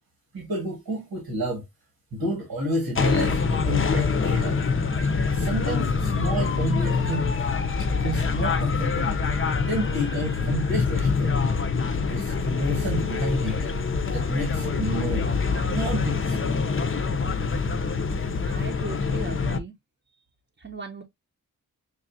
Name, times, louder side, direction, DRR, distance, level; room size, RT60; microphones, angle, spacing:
voice 1, 0.3-1.6 2.1-4.6 5.3-7.4 8.0-9.2 9.7-11.5 12.1-13.6 14.1-15.4 15.7-16.4, equal, 90° right, 1.6 m, -29 dB
sound 1, 2.9-19.6, left 5 dB, 35° left, 0.6 m, -25 dB
voice 2, 18.5-19.7 20.6-21.0, right 4 dB, 30° right, 0.7 m, -37 dB
6.4 x 2.4 x 2.6 m
wide cardioid pair, 80°, 35 cm